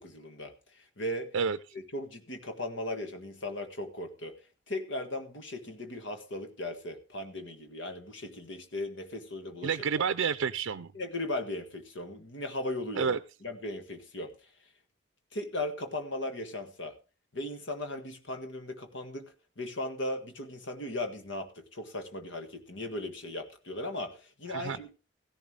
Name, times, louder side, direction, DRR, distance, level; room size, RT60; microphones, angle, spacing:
voice 1, 0.0-1.3 1.9-4.3 4.7-9.8 10.9-14.3 15.3-17.0 17.3-24.9, left 1 dB, 70° left, 6 dB, 1.6 m, -37 dB
voice 2, 9.6-10.9 13.0-13.2 24.5-24.9, right 6 dB, 85° right, 11 dB, 0.5 m, -29 dB
16.0 x 11.0 x 3.3 m, 0.33 s
head